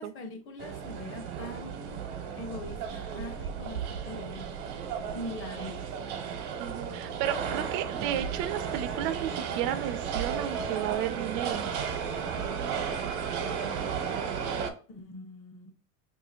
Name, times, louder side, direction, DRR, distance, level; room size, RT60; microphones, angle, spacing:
voice 1, 0.0-2.0 2.3-4.6 5.1-5.9 14.9-15.7, left 1 dB, 40° left, 0.9 m, -42 dB
sound 1, 0.6-14.7, right 7 dB, 85° right, 0.9 m, -34 dB
voice 2, 6.6-11.7, right 11 dB, 65° right, 0.5 m, -33 dB
2.7 x 2.7 x 4.2 m
cardioid pair, 140°, 32 cm